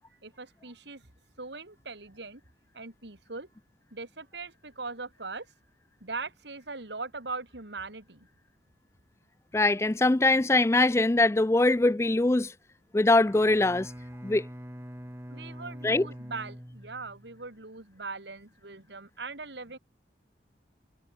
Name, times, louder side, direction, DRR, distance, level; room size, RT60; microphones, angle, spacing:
voice 1, 0.2-1.0 1.4-2.4 2.7-3.5 3.9-5.5 6.0-8.3 15.3-19.8, right 3 dB, 70° right, 2.5 m, -40 dB
voice 2, 9.5-12.5 12.9-13.9 14.2-14.5 15.8-16.1, left 2 dB, 15° left, 0.4 m, -22 dB
Bowed string instrument, 13.2-17.5, equal, 15° right, 3.5 m, -44 dB
head